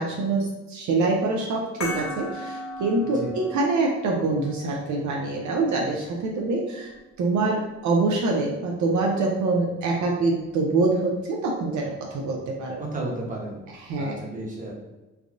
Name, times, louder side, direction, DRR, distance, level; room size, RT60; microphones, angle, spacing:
voice 1, 0.0-12.8 13.8-14.2, right 3 dB, 70° right, -1 dB, 0.5 m, -25 dB
sound 1, 1.8-6.9, equal, 50° left, 1.3 m, -38 dB
voice 2, 12.8-13.6 14.0-14.7, right 2 dB, 25° right, -3 dB, 0.9 m, -32 dB
3.3 x 2.5 x 2.5 m, 1.1 s
cardioid pair, 90°, 30 cm